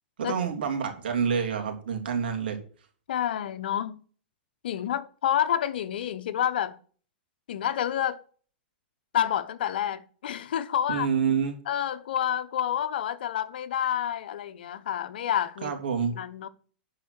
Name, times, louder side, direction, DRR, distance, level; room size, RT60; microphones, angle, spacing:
voice 1, 0.2-2.6 10.9-11.6 15.6-16.2, right 6 dB, 80° right, 3.1 m, -27 dB
voice 2, 3.1-4.0 4.6-6.8 7.5-8.2 9.1-11.1 11.7-15.7 16.1-16.5, left 10 dB, 75° left, 1.0 m, -28 dB
11.5 x 4.9 x 6.3 m
hypercardioid pair, 120°, 5 cm